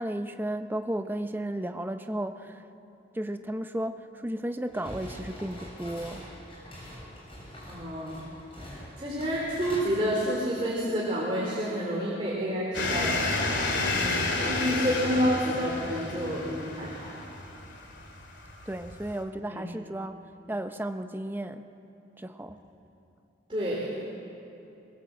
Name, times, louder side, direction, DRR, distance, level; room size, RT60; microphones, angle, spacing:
voice 1, 0.0-2.6 3.1-6.2 13.9-14.4 18.7-20.1 20.5-21.7 22.2-22.6, right 1 dB, 10° right, 8 dB, 0.8 m, -34 dB
sound 1, 4.7-9.8, equal, 30° left, 6.9 m, -44 dB
voice 2, 7.6-8.2 8.6-13.3 14.4-17.2 19.5-19.6 23.5-23.9, equal, 30° right, -5 dB, 3.6 m, -29 dB
sound 2, 12.7-19.2, left 3 dB, 65° left, 2.8 m, -31 dB
21.5 x 21.0 x 7.9 m, 2.8 s
head